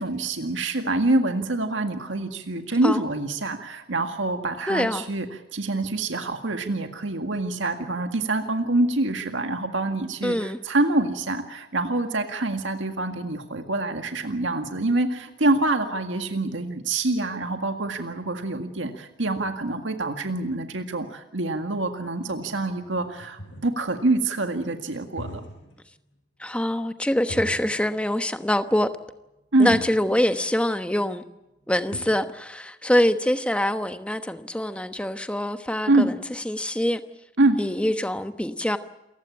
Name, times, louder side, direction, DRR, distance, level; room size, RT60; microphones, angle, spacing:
voice 1, 0.0-5.3 5.5-25.4 29.5-29.8 35.9-36.1 37.4-37.6, right 2 dB, 80° right, 1.9 m, -25 dB
voice 2, 4.7-5.0 10.2-10.6 26.4-28.9 29.6-31.2 31.7-36.1 36.4-37.0 37.6-38.8, left 1 dB, 5° left, 1.1 m, -24 dB
sound 1, 22.7-23.9 25.0-25.8 26.1-26.2 27.3-28.1 28.4-28.5 29.4-29.5 29.7-30.0 31.4-31.5 31.6-32.3, equal, 70° left, 7.8 m, -40 dB
28.5 x 16.0 x 8.6 m
head